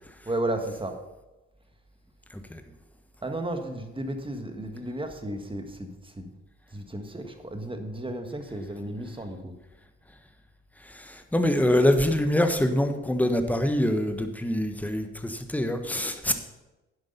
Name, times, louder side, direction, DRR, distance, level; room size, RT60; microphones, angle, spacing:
voice 1, 0.2-1.0 3.2-6.3 6.7-9.5, right 1 dB, 15° right, 5 dB, 1.7 m, -33 dB
voice 2, 10.9-16.3, left 1 dB, 5° left, 7 dB, 1.3 m, -25 dB
10.5 x 7.9 x 5.6 m, 1.0 s
hypercardioid pair, 45°, 34 cm